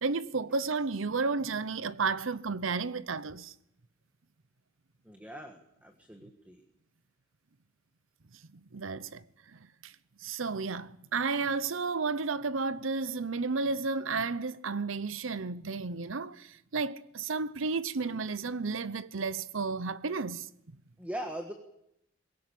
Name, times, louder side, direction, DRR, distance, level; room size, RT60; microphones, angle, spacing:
voice 1, 0.0-3.5 8.5-9.2 9.5-9.9 10.2-20.8, right 4 dB, 70° right, 0.8 m, -32 dB
voice 2, 5.0-6.6 21.0-21.5, equal, 10° right, 1.5 m, -41 dB
21.5 x 17.5 x 8.3 m
head